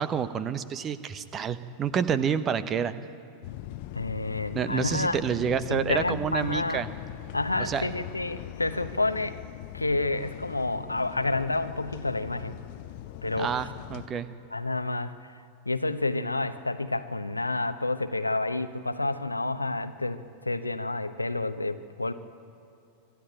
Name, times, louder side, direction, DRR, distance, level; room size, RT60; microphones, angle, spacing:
voice 1, 0.0-2.9 4.5-6.9 7.6-7.9 13.4-14.3, right 7 dB, 25° right, 14 dB, 0.9 m, -28 dB
sound 1, 3.4-14.1, left 13 dB, 50° left, 0.7 m, -41 dB
voice 2, 3.9-5.2 5.7-6.9 7.3-9.4 9.7-12.6 13.2-13.5 14.5-22.1, left 2 dB, 85° left, 11 dB, 0.9 m, -29 dB
25.0 x 13.0 x 9.1 m, 2.7 s
figure-of-eight pair, 90°, 0 cm